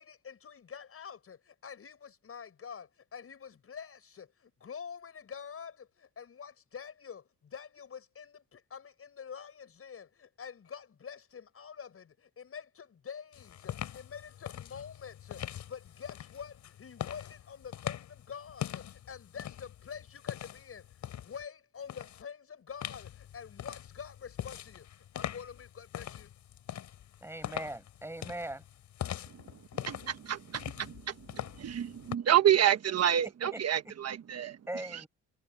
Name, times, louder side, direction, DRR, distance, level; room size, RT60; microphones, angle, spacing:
voice 1, 0.0-26.3, left 7 dB, 50° left, 7.2 m, -47 dB
sound 1, 13.3-21.4 21.9-22.2 22.8-32.1, left 11 dB, 70° left, 3.5 m, -43 dB
voice 2, 27.2-28.6 33.5-33.9 34.7-35.1, right 1 dB, 10° right, 7.1 m, -40 dB
voice 3, 29.8-34.6, right 10 dB, 55° right, 1.3 m, -28 dB
cardioid pair, 90°, 30 cm